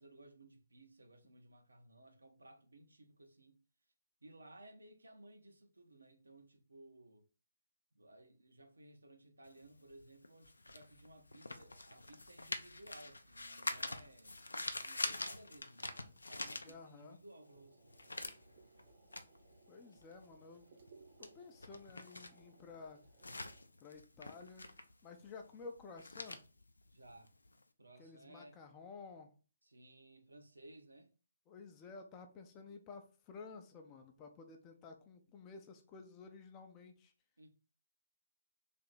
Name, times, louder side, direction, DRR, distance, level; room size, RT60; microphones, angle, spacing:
voice 1, 0.0-3.6 4.2-7.3 7.9-18.0 26.9-27.3 27.8-28.6 29.6-31.1 37.4-37.5, right 1 dB, 70° right, 0.8 m, -59 dB
sound 1, 9.5-17.2 17.5-27.6, left 2 dB, 70° left, 0.4 m, -46 dB
voice 2, 16.6-17.2 19.7-20.8 21.2-23.0 23.8-24.6 25.0-26.4 28.0-29.3 31.5-37.1, left 4 dB, 20° left, 0.5 m, -53 dB
sound 2, 17.3-23.6, right 4 dB, 45° right, 0.8 m, -65 dB
3.4 x 2.8 x 4.0 m
figure-of-eight pair, 135°, 0 cm